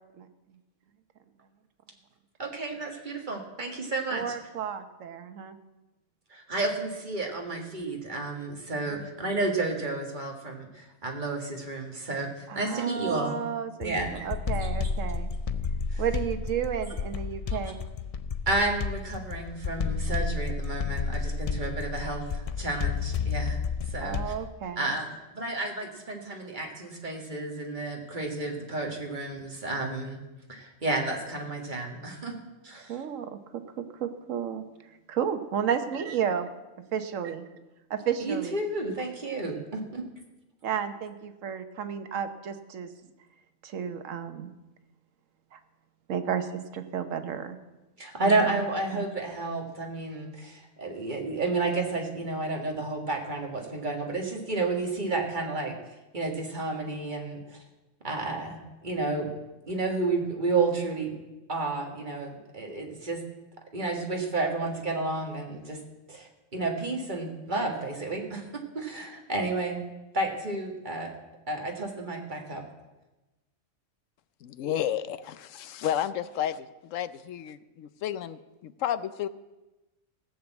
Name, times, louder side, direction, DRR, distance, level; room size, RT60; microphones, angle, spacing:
voice 1, 2.4-4.3 6.3-12.3 12.6-13.4 13.8-14.2 15.9-16.0 17.5-17.6 18.5-23.6 23.9-24.3 24.8-30.2 30.5-32.4 32.6-33.0 38.2-40.0 48.0-55.8 56.1-57.6 58.0-59.3 59.7-61.2 61.5-63.2 63.7-65.8 66.1-68.4 68.7-69.8 70.1-71.1 71.5-72.6, right 3 dB, 40° right, 1 dB, 2.0 m, -31 dB
voice 2, 4.1-5.6 8.9-9.1 12.5-15.3 16.0-17.8 24.0-24.9 32.8-34.6 35.1-36.5 36.9-37.4 37.9-38.6 40.6-42.9 43.6-44.5 45.5-45.6 46.1-47.6 48.2-48.4 48.9-49.1, right 8 dB, 85° right, 9 dB, 1.3 m, -32 dB
sound 1, 13.8-24.5, left 5 dB, 65° left, 0.3 m, -31 dB
voice 3, 74.4-79.3, left 10 dB, 85° left, 14 dB, 1.0 m, -32 dB
16.0 x 6.9 x 7.9 m, 1.1 s
omnidirectional pair, 1.3 m